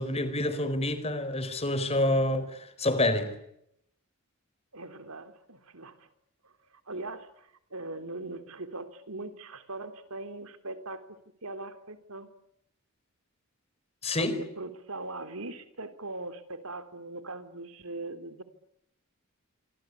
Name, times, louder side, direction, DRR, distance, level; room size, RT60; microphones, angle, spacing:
voice 1, 0.0-3.3 14.0-14.4, left 1 dB, 30° left, 4.4 m, -28 dB
voice 2, 4.7-6.1 6.4-12.3 14.2-18.4, right 2 dB, 80° right, 3.4 m, -41 dB
26.5 x 26.0 x 8.5 m
head